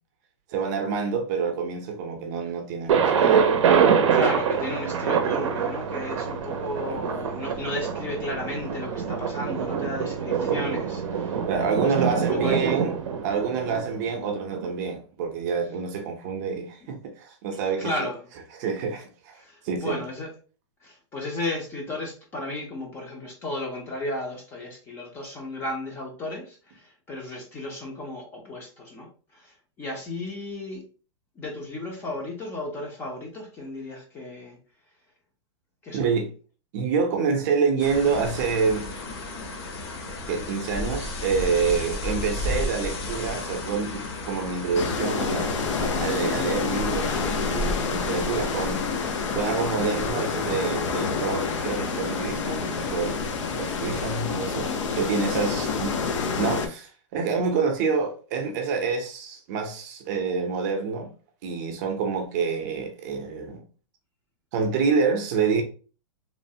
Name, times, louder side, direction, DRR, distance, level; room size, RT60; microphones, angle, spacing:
voice 1, 0.5-3.5 6.8-7.1 11.5-12.9 13.2-18.1 18.6-20.0 35.9-36.3 36.7-38.9 40.3-49.0 49.3-53.3 53.5-56.0 56.3-61.1 61.4-63.6 64.5-65.6, right 5 dB, 35° right, 0.5 m, -27 dB
Thunder, 2.9-14.7, right 7 dB, 85° right, 0.5 m, -25 dB
voice 2, 4.1-11.4 11.7-12.8 17.8-18.2 19.4-20.3 20.8-29.1 29.3-30.9 31.4-34.6 35.8-36.2 48.5-48.6 55.3-56.0, left 2 dB, 15° left, 0.4 m, -34 dB
sound 1, 37.8-54.2, left 2 dB, 55° left, 0.8 m, -35 dB
sound 2, 44.7-56.7, left 5 dB, 85° left, 0.6 m, -28 dB
3.1 x 2.0 x 2.6 m
supercardioid pair, 160°, 15 cm